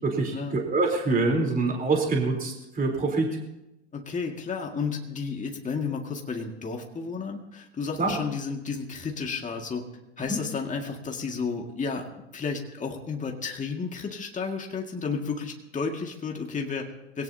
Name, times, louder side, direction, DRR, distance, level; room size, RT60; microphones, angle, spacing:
voice 1, 0.0-3.3 8.0-8.1, right 3 dB, 25° right, 1 dB, 3.7 m, -25 dB
voice 2, 3.9-9.8 10.2-12.0 12.3-17.2, left 5 dB, 20° left, 2 dB, 2.1 m, -32 dB
22.0 x 17.5 x 2.8 m, 0.91 s
hypercardioid pair, 90°, 35 cm